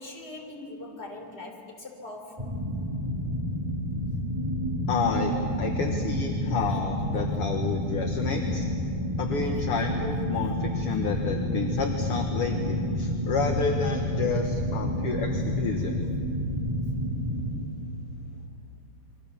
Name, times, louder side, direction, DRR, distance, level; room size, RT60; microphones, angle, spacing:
voice 1, 0.0-2.5, left 2 dB, 20° left, 1 dB, 3.7 m, -41 dB
sound 1, 2.4-17.5, equal, 10° right, 3.6 m, -29 dB
voice 2, 4.9-8.7 9.2-16.0, left 5 dB, 55° left, 3 dB, 2.1 m, -30 dB
sound 2, 11.9-18.5, right 2 dB, 75° left, 3.2 m, -43 dB
28.5 x 23.0 x 7.1 m, 2.7 s
omnidirectional pair, 3.3 m